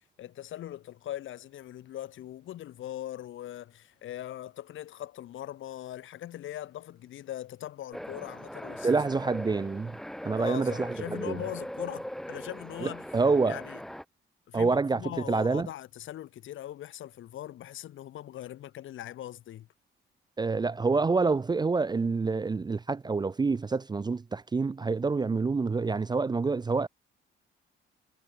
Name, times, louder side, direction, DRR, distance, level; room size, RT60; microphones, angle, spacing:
voice 1, 0.2-9.0 10.4-13.1 13.5-13.8 14.5-19.7, left 12 dB, 80° left, 7.1 m, -41 dB
sound 1, 7.9-14.0, equal, ahead, 1.8 m, -40 dB
voice 2, 8.8-10.0 10.2-11.4 12.8-13.6 14.5-15.0 15.3-15.7 20.4-26.9, right 4 dB, 20° right, 0.5 m, -27 dB
cardioid pair, 90°, 20 cm